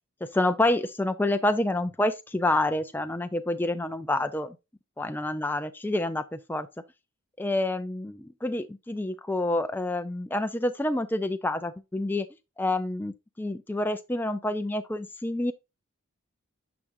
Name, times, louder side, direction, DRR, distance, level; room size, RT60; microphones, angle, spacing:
voice 1, 0.2-4.6 5.0-6.7 7.4-12.3 12.6-15.5, left 1 dB, 10° left, 0.4 m, -28 dB
9.8 x 6.0 x 2.6 m
head